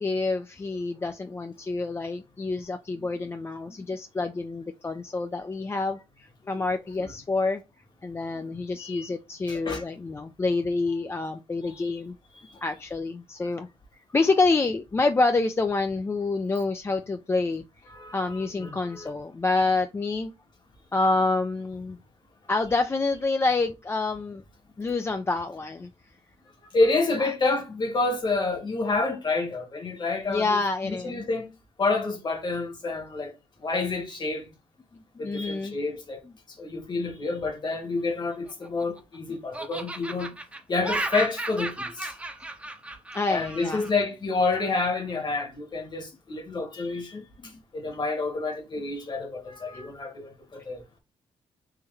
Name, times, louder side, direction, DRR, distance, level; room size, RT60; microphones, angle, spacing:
voice 1, 0.0-7.6 8.0-12.1 12.6-13.7 14.1-17.6 18.1-20.3 20.9-22.0 22.5-24.4 24.8-25.9 30.3-31.2 35.2-35.8 43.1-43.9 47.4-47.5, left 3 dB, 20° left, 0.3 m, -27 dB
voice 2, 9.5-9.8 11.7-11.9 17.9-19.1 26.7-31.5 31.8-33.3 33.6-34.4 35.2-36.2 36.6-40.3 40.7-42.1 43.3-47.2 47.7-50.8, left 3 dB, 40° left, 1.3 m, -28 dB
Laughter, 38.3-39.2 39.5-43.9, right 2 dB, 10° right, 0.7 m, -34 dB
3.7 x 2.9 x 3.2 m
cardioid pair, 80°, 11 cm